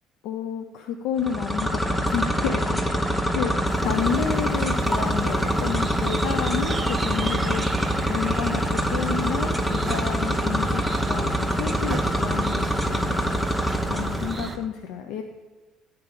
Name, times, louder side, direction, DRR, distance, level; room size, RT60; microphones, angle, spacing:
voice 1, 0.2-3.0 3.4-3.5 3.8-7.7 8.1-10.8 11.1-13.0 13.3-13.4 13.9-15.2, left 8 dB, 60° left, 5 dB, 0.5 m, -30 dB
sound 1, 1.2-14.6, equal, 5° left, 0.8 m, -25 dB
sound 2, 3.7-14.6, right 4 dB, 30° right, 0.4 m, -35 dB
10.0 x 4.5 x 5.0 m, 1.3 s
figure-of-eight pair, 55°, 0 cm